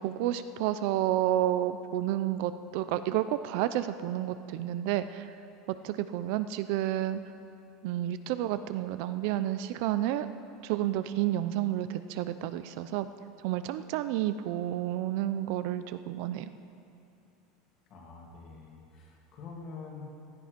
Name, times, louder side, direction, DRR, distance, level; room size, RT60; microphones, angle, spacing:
voice 1, 0.0-5.3 5.7-7.2 7.8-10.3 10.6-13.1 13.4-16.5, right 13 dB, 55° right, 12 dB, 0.5 m, -30 dB
voice 2, 17.9-20.1, left 4 dB, 35° left, 0 dB, 2.2 m, -46 dB
16.5 x 11.5 x 5.2 m, 2.8 s
supercardioid pair, 170°, 0 cm